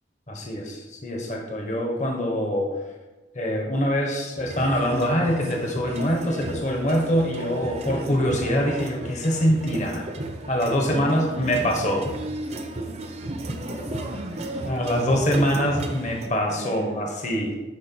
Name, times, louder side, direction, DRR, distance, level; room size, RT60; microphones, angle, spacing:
voice 1, 0.3-2.8 3.3-10.1 10.5-12.1 14.7-17.6, equal, 40° left, 0 dB, 1.3 m, -24 dB
sound 1, 4.4-16.3, right 1 dB, 35° right, 0.8 m, -34 dB
voice 2, 10.9-11.5 12.9-13.0 13.4-14.7 16.5-17.2, equal, 90° right, -7 dB, 2.5 m, -38 dB
11.0 x 4.4 x 4.6 m, 1.2 s
head